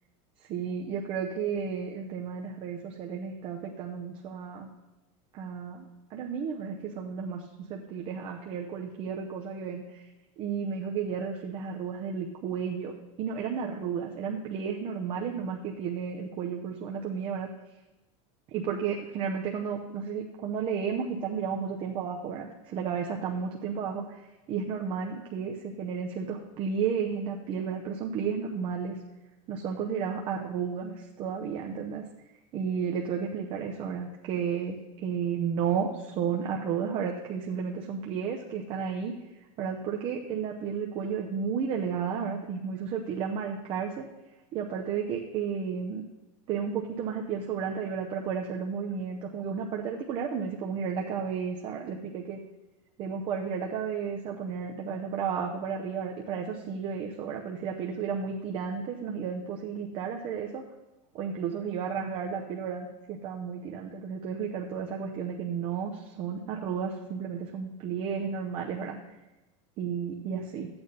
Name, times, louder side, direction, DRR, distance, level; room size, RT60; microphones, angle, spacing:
voice 1, 0.5-4.7 5.3-5.9 6.1-7.4 7.7-10.0 10.4-17.5 18.5-24.1 24.5-29.0 29.5-32.0 32.5-39.1 39.6-44.1 44.5-46.0 46.5-52.4 53.0-60.7 61.1-69.0 69.8-70.7, right 6 dB, 30° right, 0 dB, 0.8 m, -32 dB
13.5 x 8.7 x 4.0 m, 1.0 s
supercardioid pair, 180°, 17 cm